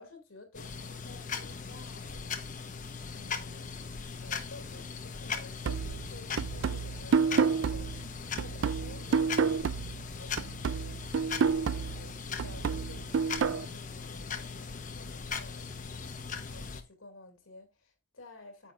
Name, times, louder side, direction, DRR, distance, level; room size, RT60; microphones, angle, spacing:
voice 1, 0.0-2.3 3.1-3.7 4.2-18.7, left 2 dB, 80° left, 2.6 m, -53 dB
sound 1, 0.5-16.8, left 5 dB, 40° left, 1.0 m, -39 dB
sound 2, 5.6-10.1 10.4-13.6, right 5 dB, 70° right, 0.4 m, -30 dB
9.8 x 8.6 x 2.5 m
head